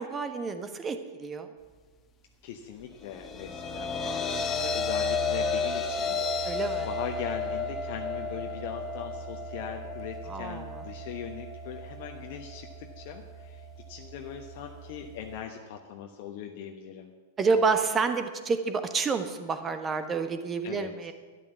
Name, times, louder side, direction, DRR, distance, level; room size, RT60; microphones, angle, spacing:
voice 1, 0.0-1.5 6.4-6.9 10.3-10.8 17.4-21.1, right 4 dB, 20° right, 9 dB, 1.3 m, -29 dB
voice 2, 2.4-17.1 20.6-20.9, left 9 dB, 50° left, 3 dB, 1.1 m, -40 dB
sound 1, 3.0-15.4, left 3 dB, 20° left, 1.5 m, -33 dB
12.5 x 10.5 x 7.0 m, 1.4 s
figure-of-eight pair, 100°, 0 cm